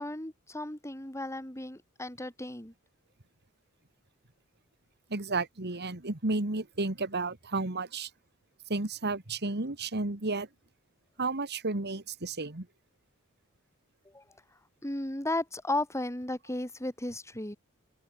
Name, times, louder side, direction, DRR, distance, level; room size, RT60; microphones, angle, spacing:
voice 1, 0.0-2.7 14.1-14.2 14.8-17.6, left 1 dB, 15° left, 4.0 m, -35 dB
voice 2, 5.1-8.1 8.7-10.5 11.2-12.7, right 3 dB, 50° right, 2.0 m, -32 dB
open air
head